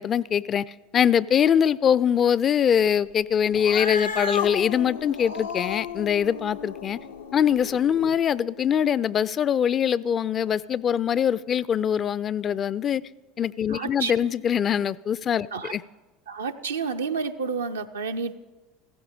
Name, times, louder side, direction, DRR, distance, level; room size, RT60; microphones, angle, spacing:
voice 1, 0.0-7.0 7.3-13.0 13.4-15.8, left 8 dB, 40° left, 0.4 m, -23 dB
Cat, 3.5-8.2, left 5 dB, 85° left, 0.6 m, -33 dB
voice 2, 13.7-14.1 15.5-15.8 16.3-18.4, right 5 dB, 85° right, 0.6 m, -30 dB
15.5 x 15.0 x 5.1 m
hypercardioid pair, 75°, 0 cm